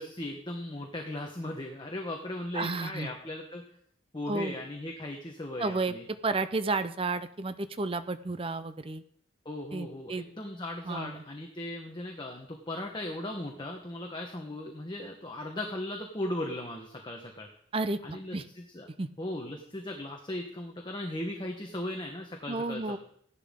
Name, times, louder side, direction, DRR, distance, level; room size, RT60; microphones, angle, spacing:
voice 1, 0.0-3.6 4.1-6.0 9.4-17.5 18.0-18.9 19.2-23.0, left 1 dB, 25° left, 2 dB, 1.2 m, -37 dB
voice 2, 2.5-3.1 4.3-4.5 5.6-5.9 6.2-9.0 9.7-10.2 10.8-11.2 17.7-18.4 19.0-19.1 22.5-23.0, right 3 dB, 30° right, 11 dB, 0.6 m, -32 dB
15.5 x 11.0 x 3.7 m, 0.67 s
head